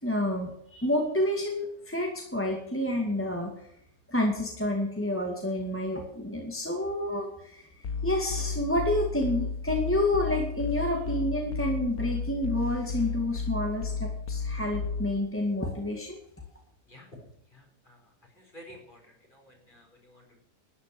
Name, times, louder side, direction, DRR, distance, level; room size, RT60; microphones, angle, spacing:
voice 1, 0.0-3.5 4.1-16.2, left 1 dB, 5° left, 0 dB, 2.2 m, -29 dB
sound 1, 7.8-15.2, left 4 dB, 60° left, 1.5 m, -33 dB
voice 2, 16.8-17.2 17.5-20.4, left 1 dB, 30° left, 1 dB, 5.0 m, -52 dB
13.0 x 10.5 x 7.2 m, 0.72 s
omnidirectional pair, 1.8 m